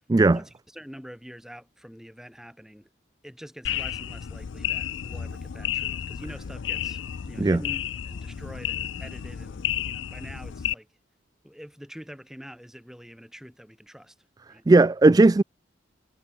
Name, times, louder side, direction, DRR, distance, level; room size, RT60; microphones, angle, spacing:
voice 1, 0.3-2.9 3.2-10.9 11.4-14.2 14.5-14.7, equal, ahead, 4.4 m, -45 dB
sound 1, 3.7-10.7, left 10 dB, 80° left, 0.5 m, -32 dB
voice 2, 14.7-15.4, right 2 dB, 20° right, 0.3 m, -16 dB
head